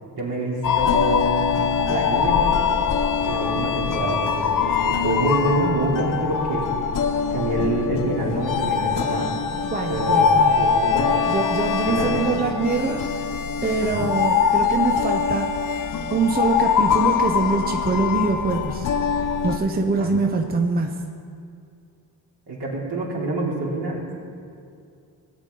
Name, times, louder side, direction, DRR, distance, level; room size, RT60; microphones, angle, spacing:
voice 1, 0.1-1.4 1.8-2.6 3.2-6.7 7.3-9.3 9.9-11.2 11.8-12.1 13.8-14.1 20.0-20.2 22.5-24.1, right 2 dB, 65° right, -4 dB, 3.2 m, -26 dB
sound 1, 0.6-19.6, left 6 dB, 45° left, 0.8 m, -23 dB
voice 2, 9.7-10.6 11.3-13.3 13.6-15.5 16.1-20.9, right 3 dB, 20° right, 3 dB, 0.8 m, -24 dB
17.5 x 8.2 x 3.8 m, 2.4 s
cardioid pair, 75°, 44 cm